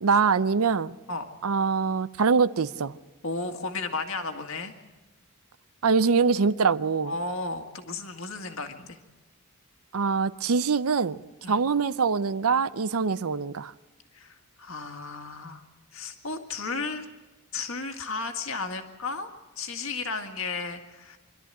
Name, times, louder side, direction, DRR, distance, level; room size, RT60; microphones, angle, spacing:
voice 1, 0.0-0.9 1.4-3.0 5.8-7.1 9.9-11.2 11.5-13.7, right 5 dB, 75° right, 0.6 m, -24 dB
voice 2, 3.2-4.7 7.0-9.0 11.4-11.6 14.1-15.6 15.9-17.1 17.5-19.3 19.6-21.2, left 3 dB, 60° left, 1.9 m, -34 dB
26.0 x 13.0 x 9.1 m
head